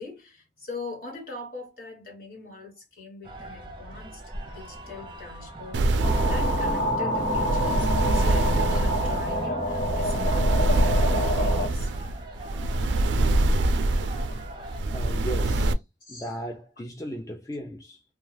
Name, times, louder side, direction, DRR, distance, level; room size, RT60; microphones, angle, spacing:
voice 1, 0.0-11.9 16.0-16.3, left 3 dB, 50° left, 1.3 m, -42 dB
sound 1, 3.2-15.5, right 1 dB, 25° right, 0.6 m, -42 dB
sound 2, 5.7-15.7, right 2 dB, 80° right, 0.4 m, -25 dB
sound 3, 6.0-11.7, equal, 75° left, 1.2 m, -27 dB
voice 2, 14.9-15.8 16.1-18.0, equal, 20° left, 0.3 m, -36 dB
2.3 x 2.2 x 3.2 m
head